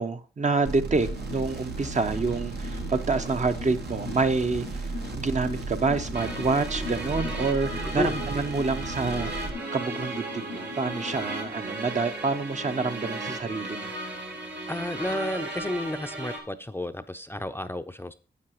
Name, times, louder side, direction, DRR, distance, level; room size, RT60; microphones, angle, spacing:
voice 1, 0.0-4.7 5.1-13.9, right 3 dB, 40° right, 0.7 m, -27 dB
sound 1, 0.7-9.5, right 4 dB, 70° right, 0.9 m, -35 dB
sound 2, 1.0-11.5, left 6 dB, 85° left, 0.7 m, -41 dB
sound 3, 6.1-16.4, right 2 dB, 85° right, 1.8 m, -36 dB
voice 2, 14.7-18.1, left 1 dB, 10° left, 0.5 m, -31 dB
9.5 x 7.6 x 3.0 m
cardioid pair, 50°, 18 cm